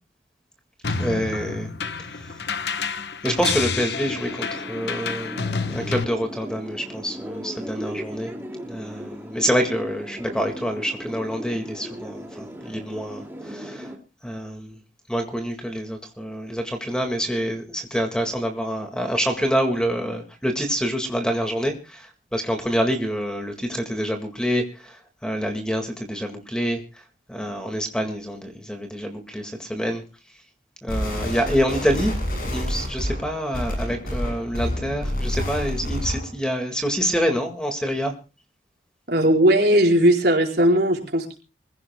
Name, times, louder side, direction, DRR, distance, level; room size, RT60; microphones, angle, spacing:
sound 1, 0.8-6.0, left 5 dB, 65° left, 1.1 m, -29 dB
voice 1, 1.0-1.7 2.1-2.2 3.2-5.4 5.7-8.3 8.6-13.9 14.2-14.7 15.1-27.0 27.3-30.0 30.8-38.2, equal, 5° left, 4 dB, 1.9 m, -26 dB
sound 2, 4.0-14.0, equal, 10° right, 2.3 m, -37 dB
sound 3, 30.9-36.3, left 1 dB, 50° left, 7.2 m, -28 dB
voice 2, 39.1-41.3, right 1 dB, 60° right, 1 dB, 4.7 m, -18 dB
25.5 x 16.0 x 2.3 m, 0.33 s
head